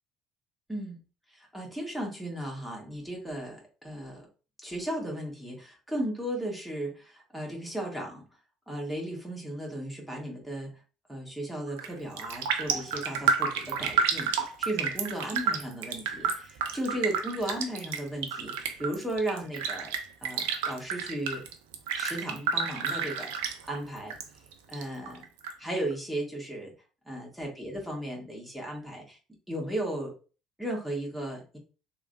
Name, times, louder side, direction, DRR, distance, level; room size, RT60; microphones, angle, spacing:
voice 1, 0.7-1.0 1.3-4.3 4.6-8.2 8.7-10.8 11.1-19.9 20.2-21.4 21.9-24.1 24.7-25.2 25.6-26.7 27.1-29.2 29.5-30.1 30.6-31.6, right 1 dB, 5° right, -1 dB, 1.3 m, -35 dB
Raindrop, 11.7-11.9 12.2-24.2 24.5-25.5 25.9-26.0, right 6 dB, 75° right, 0.4 m, -30 dB
3.1 x 2.0 x 2.6 m, 0.35 s
hypercardioid pair, 55°, 0 cm